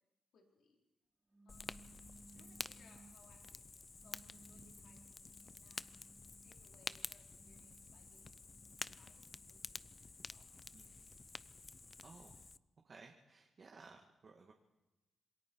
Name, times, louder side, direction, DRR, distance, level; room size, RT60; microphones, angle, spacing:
voice 1, 0.3-0.8 1.4-3.7 4.0-5.9 6.4-8.4 8.9-9.9 10.3-11.1, left 4 dB, 80° left, 0 dB, 4.2 m, -70 dB
sound 1, 1.3-3.3 4.0-6.6 7.2-9.5, right 2 dB, 25° right, 4.1 m, -63 dB
Fire, 1.5-12.6, left 4 dB, 40° left, 0.6 m, -50 dB
voice 2, 12.0-12.3 12.8-14.5, right 4 dB, 50° right, 1 dB, 2.2 m, -58 dB
27.0 x 22.0 x 4.7 m, 1.0 s
cardioid pair, 65°, 0 cm